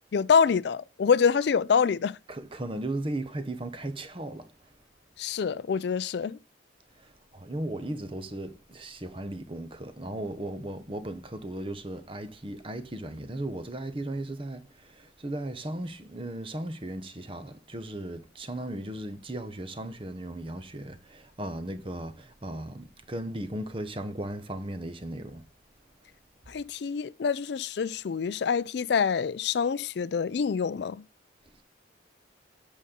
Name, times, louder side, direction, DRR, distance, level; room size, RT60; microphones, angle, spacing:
voice 1, 0.1-2.2 5.2-6.4 26.5-31.0, left 6 dB, 60° left, 0.4 m, -26 dB
voice 2, 2.3-4.7 7.0-25.5, right 1 dB, 30° right, 0.9 m, -36 dB
8.3 x 6.5 x 3.7 m
head